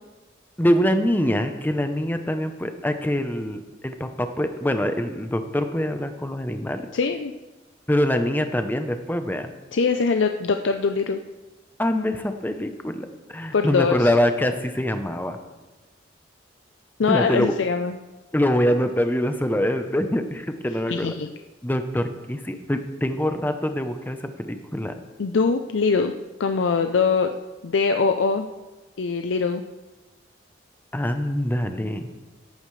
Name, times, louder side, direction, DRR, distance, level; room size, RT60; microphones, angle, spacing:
voice 1, 0.6-6.8 7.9-9.5 11.8-15.4 17.1-17.5 18.3-21.1 21.6-24.9 30.9-32.1, equal, 10° left, 7 dB, 0.7 m, -24 dB
voice 2, 6.9-7.3 9.7-11.2 13.5-14.1 17.0-18.0 20.9-21.3 25.2-26.1 26.4-27.4 27.6-28.5 29.0-29.6, left 5 dB, 85° left, 6 dB, 0.5 m, -22 dB
17.0 x 9.0 x 3.2 m, 1.2 s
head